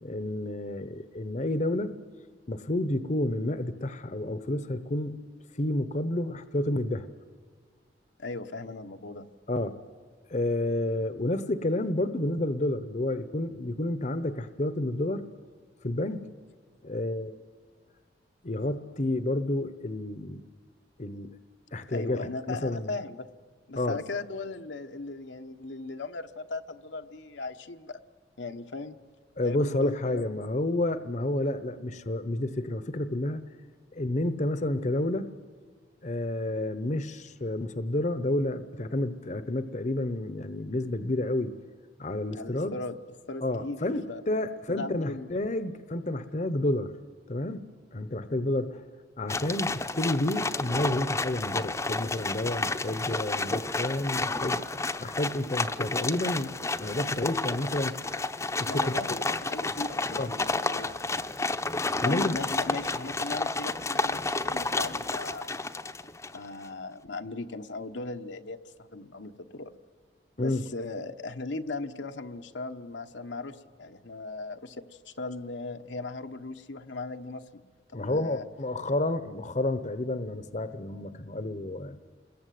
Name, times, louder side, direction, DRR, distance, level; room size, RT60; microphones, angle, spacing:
voice 1, 0.0-2.0 2.5-5.2 5.5-7.1 9.5-9.7 10.3-15.2 15.8-16.3 16.8-17.4 18.4-20.4 21.0-21.4 21.7-22.9 23.7-24.0 29.4-33.4 33.9-35.3 36.0-41.6 42.0-42.8 43.4-46.9 47.3-48.8 49.2-54.6 55.0-58.2 58.6-59.2 60.2-60.3 62.0-62.3 70.4-70.6 77.9-82.0, left 1 dB, 40° left, 12 dB, 0.9 m, -30 dB
voice 2, 8.2-9.3 21.9-23.3 23.7-28.0 28.4-28.9 29.4-30.2 42.4-43.0 43.3-44.2 44.7-45.4 58.7-61.1 62.0-65.6 66.3-69.7 70.4-77.6 77.9-78.4, left 3 dB, 80° left, 6 dB, 1.1 m, -38 dB
sound 1, 49.3-66.5, left 3 dB, 15° left, 0.7 m, -31 dB
28.5 x 21.5 x 9.3 m, 1.5 s
head